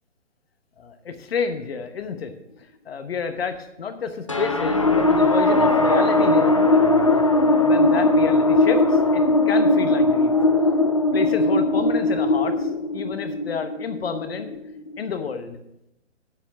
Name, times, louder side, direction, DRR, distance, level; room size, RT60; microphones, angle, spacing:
voice 1, 0.8-2.3 2.6-6.9 7.5-10.3 11.1-14.5 15.0-15.6, left 6 dB, 55° left, 8 dB, 1.0 m, -30 dB
sound 1, 4.3-15.0, left 2 dB, 30° left, 0.4 m, -19 dB
9.8 x 7.2 x 5.8 m, 0.83 s
hypercardioid pair, 160°, 37 cm